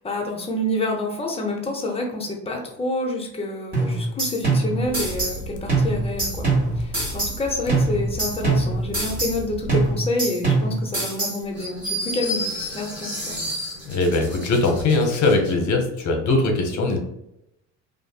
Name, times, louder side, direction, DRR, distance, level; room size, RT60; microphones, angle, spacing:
voice 1, 0.0-6.5 6.8-13.3, left 1 dB, 15° left, 0 dB, 0.7 m, -28 dB
sound 1, 3.7-5.4 5.7-7.4 7.7-9.4 9.7-11.4, right 3 dB, 25° right, 1.4 m, -24 dB
sound 2, 4.8-9.9, equal, 80° left, 0.6 m, -35 dB
sound 3, 11.6-15.5, equal, 5° right, 1.3 m, -31 dB
voice 2, 13.8-17.0, left 2 dB, 50° left, 3 dB, 0.8 m, -21 dB
2.6 x 2.5 x 2.3 m, 0.83 s
hypercardioid pair, 75°, 37 cm